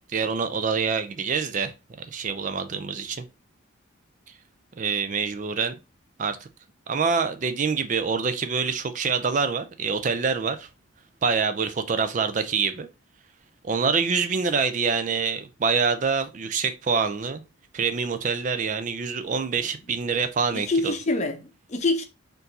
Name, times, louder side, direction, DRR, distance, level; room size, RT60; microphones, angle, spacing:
voice 1, 0.1-1.7 2.0-3.2 4.8-5.7 6.2-6.4 6.9-10.7 11.2-12.9 13.6-17.4 17.7-20.9, right 5 dB, 35° right, 0.4 m, -26 dB
voice 2, 20.5-22.0, left 2 dB, 35° left, 0.7 m, -26 dB
4.4 x 2.6 x 4.0 m
head